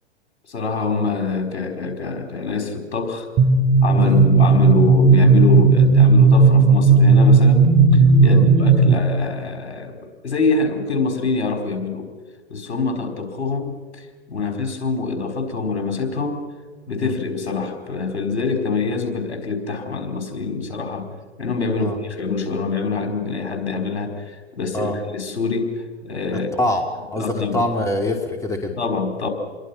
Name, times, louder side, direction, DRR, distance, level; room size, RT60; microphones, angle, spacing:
voice 1, 0.5-3.3 3.8-12.1 12.5-16.4 16.9-21.1 21.4-26.5 27.1-27.7 28.8-29.3, left 4 dB, 70° left, 5 dB, 4.7 m, -25 dB
sound 1, 3.4-9.0, right 4 dB, 40° right, 3.2 m, -13 dB
voice 2, 26.5-26.8 27.1-28.8, left 1 dB, 10° left, 4 dB, 2.6 m, -24 dB
28.0 x 22.0 x 5.8 m, 1.4 s
figure-of-eight pair, 105°, 33 cm